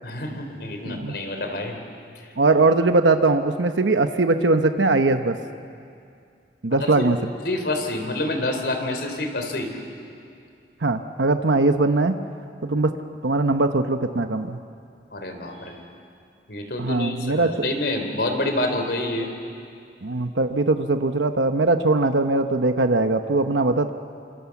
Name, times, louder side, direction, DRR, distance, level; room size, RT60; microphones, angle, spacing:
voice 1, 0.0-1.8 2.2-2.3 6.8-7.1 7.4-9.7 15.1-15.8 16.5-19.3, left 1 dB, 65° left, 5 dB, 3.7 m, -27 dB
voice 2, 2.4-5.4 6.6-7.2 10.8-12.2 12.6-12.9 13.2-14.6 16.8-17.7 20.0-23.9, right 3 dB, 90° right, 7 dB, 1.0 m, -20 dB
28.5 x 26.0 x 7.2 m, 2.4 s
head